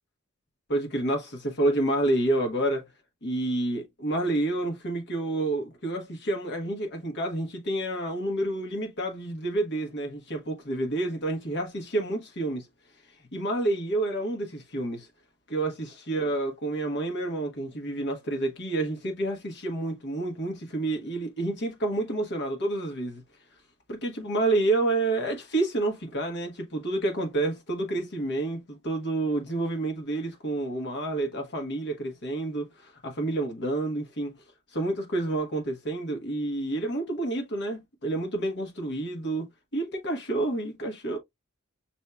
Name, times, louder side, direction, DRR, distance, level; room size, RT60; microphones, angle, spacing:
voice 1, 0.7-2.8 3.2-12.7 13.3-15.1 15.5-23.2 23.9-34.3 34.7-41.2, right 2 dB, 55° left, 1.3 m, -29 dB
6.1 x 2.7 x 2.3 m
head